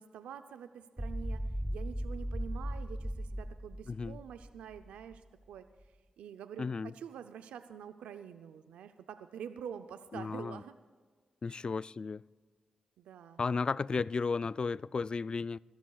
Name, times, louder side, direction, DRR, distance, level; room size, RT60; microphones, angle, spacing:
voice 1, 0.0-10.7 11.5-11.7 13.0-13.4, right 8 dB, 85° right, 0.5 m, -47 dB
sound 1, 1.0-5.2, equal, 5° right, 0.7 m, -37 dB
voice 2, 3.9-4.2 6.6-6.9 10.1-10.6 11.4-12.2 13.4-15.6, left 4 dB, 45° left, 0.3 m, -34 dB
25.5 x 13.5 x 2.4 m
supercardioid pair, 40°, 2 cm